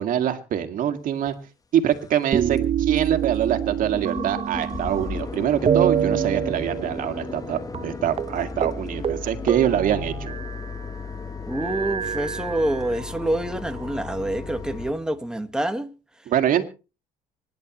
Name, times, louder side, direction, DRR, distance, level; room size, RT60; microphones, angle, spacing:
voice 1, 0.0-1.3 1.7-10.3 16.3-16.7, right 10 dB, 60° right, 2.2 m, -24 dB
sound 1, 1.3-1.4 1.9-2.2 2.6-2.7 3.0-3.1 3.3-14.9, left 4 dB, 25° left, 1.2 m, -35 dB
sound 2, 2.3-5.3 5.7-7.5 7.7-7.9 8.2-8.4 8.6-8.8 9.0-10.8 11.5-13.1 13.8-14.7, right 9 dB, 40° right, 0.7 m, -27 dB
voice 2, 11.5-15.9, right 1 dB, 5° right, 1.6 m, -27 dB
25.5 x 10.5 x 3.1 m
cardioid pair, 100°, 15 cm